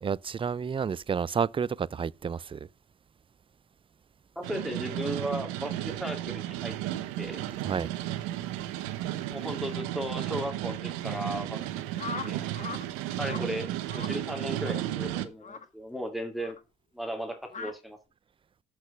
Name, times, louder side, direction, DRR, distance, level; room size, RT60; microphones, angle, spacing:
voice 1, 0.0-2.6 7.7-7.9, right 6 dB, 25° right, 0.5 m, -30 dB
voice 2, 4.4-6.8 7.2-7.4 9.3-11.6 11.9-12.5 13.2-13.7 13.9-16.6 16.9-18.0, equal, ahead, 2.4 m, -36 dB
sound 1, 4.4-15.3, right 13 dB, 90° right, 1.0 m, -34 dB
sound 2, 12.0-12.8 13.1-13.5 13.9-14.2 14.6-14.8 15.4-15.7 16.4-16.6 17.5-17.7, left 5 dB, 40° left, 1.7 m, -39 dB
8.0 x 6.1 x 6.5 m
supercardioid pair, 70°, 20 cm